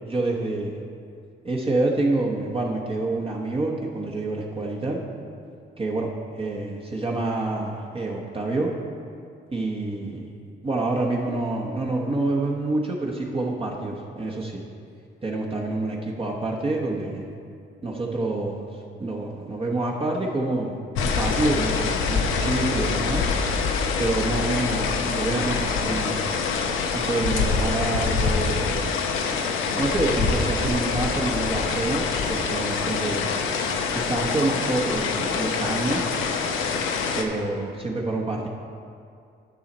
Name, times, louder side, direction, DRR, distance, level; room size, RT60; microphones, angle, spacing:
voice 1, 0.1-0.7 1.4-5.0 5.8-6.1 6.4-8.7 9.5-10.2 10.6-14.6 15.2-17.2 17.8-18.6 19.0-23.2 23.5-23.7 24.0-26.2 26.9-28.9 29.8-33.3 34.1-36.0 37.2-38.5, right 2 dB, 30° right, -2 dB, 1.1 m, -27 dB
sound 1, 20.9-37.2, left 5 dB, 90° left, 0.8 m, -25 dB
12.0 x 5.7 x 4.2 m, 2.4 s
cardioid pair, 90°, 20 cm